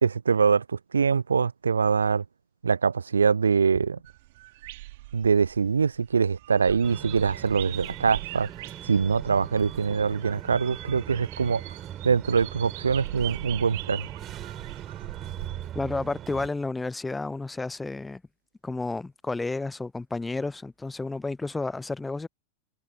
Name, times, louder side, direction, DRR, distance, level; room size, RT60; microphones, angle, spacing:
voice 1, 0.0-2.2 2.6-4.0 5.1-8.5 8.8-11.6 12.0-14.1, right 5 dB, 75° right, 0.6 m, -23 dB
sound 1, 4.1-15.7, right 19 dB, 50° right, 2.8 m, -42 dB
sound 2, 6.8-16.5, right 11 dB, 30° right, 5.2 m, -41 dB
voice 2, 15.7-18.2 18.6-22.3, left 3 dB, 10° left, 0.5 m, -31 dB
figure-of-eight pair, 90°, 0 cm